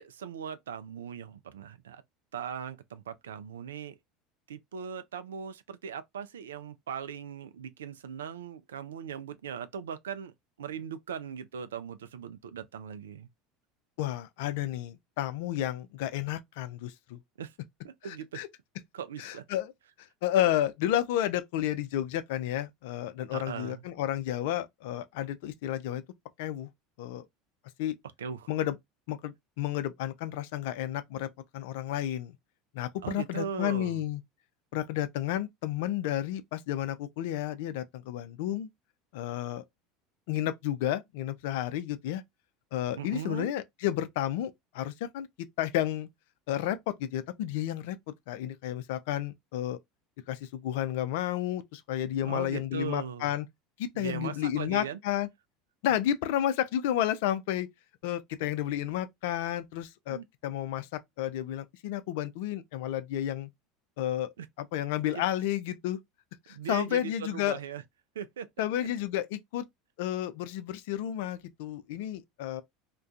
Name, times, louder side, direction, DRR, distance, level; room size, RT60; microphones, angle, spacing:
voice 1, 0.0-2.0 2.3-4.0 4.5-13.3 17.4-17.5 17.8-18.4 18.9-19.5 23.3-23.8 28.2-28.5 33.0-34.0 43.0-43.5 52.2-53.4 54.0-55.0 60.1-60.2 64.4-64.5 65.1-65.2 66.5-67.8 68.2-68.7, right 8 dB, 80° right, 0.3 m, -39 dB
voice 2, 14.0-17.2 18.0-18.5 19.2-19.7 20.0-26.0 26.4-26.7 27.0-27.3 27.8-28.0 28.5-28.8 29.1-31.3 31.5-32.3 32.7-34.2 34.7-38.7 39.1-39.6 40.3-42.2 42.7-46.1 46.5-49.8 50.3-53.5 53.8-55.3 55.8-57.7 58.0-63.5 64.0-64.3 64.6-66.0 66.5-67.6 68.6-69.7 70.0-72.6, left 12 dB, 65° left, 0.4 m, -31 dB
2.3 x 2.2 x 2.5 m
hypercardioid pair, 75°, 0 cm